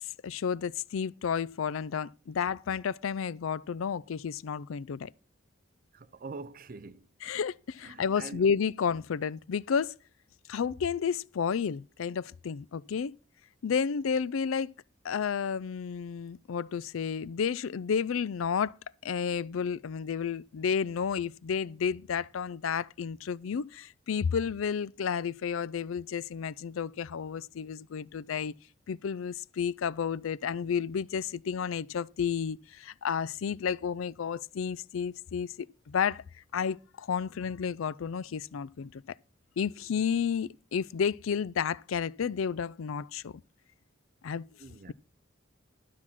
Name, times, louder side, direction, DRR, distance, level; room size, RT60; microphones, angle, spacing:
voice 1, 0.2-5.1 7.2-10.0 10.5-13.1 13.6-14.7 15.0-18.7 19.0-28.5 28.9-36.2 36.5-39.0 39.6-43.3 44.2-44.5, left 6 dB, 85° left, 0.4 m, -31 dB
voice 2, 5.9-7.1 7.8-8.5 44.6-44.9, right 3 dB, 45° right, 0.6 m, -44 dB
12.0 x 5.8 x 6.0 m
head